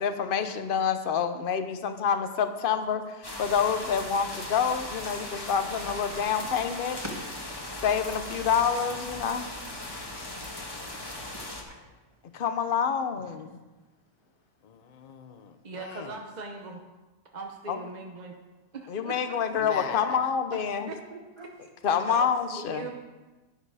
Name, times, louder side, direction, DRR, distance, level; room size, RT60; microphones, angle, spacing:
voice 1, 0.0-7.0 7.8-9.5 12.3-13.5 17.7-17.8 18.9-20.9 21.8-22.9, left 7 dB, 45° left, 9 dB, 0.7 m, -27 dB
sound 1, 3.2-11.6, left 1 dB, 15° left, 1.3 m, -38 dB
voice 2, 6.1-6.6 7.0-7.4 8.9-9.0 11.1-11.8 21.4-21.5 22.1-22.6, equal, 15° right, 0 dB, 1.8 m, -44 dB
voice 3, 14.6-16.2 19.6-20.2, left 7 dB, 80° left, 9 dB, 0.3 m, -39 dB
voice 4, 15.6-16.8 17.3-18.3 18.7-19.4 20.9-21.2 22.1-23.0, right 3 dB, 35° right, 2 dB, 0.7 m, -40 dB
11.0 x 9.7 x 4.9 m, 1.2 s
omnidirectional pair, 1.7 m